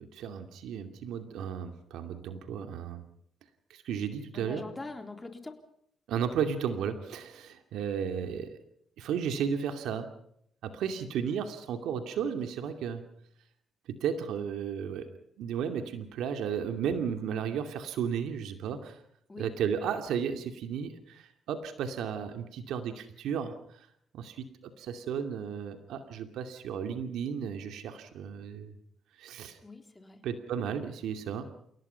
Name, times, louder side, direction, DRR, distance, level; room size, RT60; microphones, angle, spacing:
voice 1, 0.0-3.0 3.7-4.6 6.1-8.6 9.0-10.1 10.6-13.0 13.9-15.1 15.4-19.0 19.4-23.6 24.1-28.7 29.2-29.6 30.2-31.5, right 7 dB, 80° right, 7 dB, 2.4 m, -34 dB
voice 2, 4.3-5.6 19.3-19.5 29.6-30.2, left 3 dB, 20° left, 6 dB, 3.7 m, -43 dB
29.5 x 17.5 x 5.7 m, 0.72 s
cardioid pair, 90°, 0 cm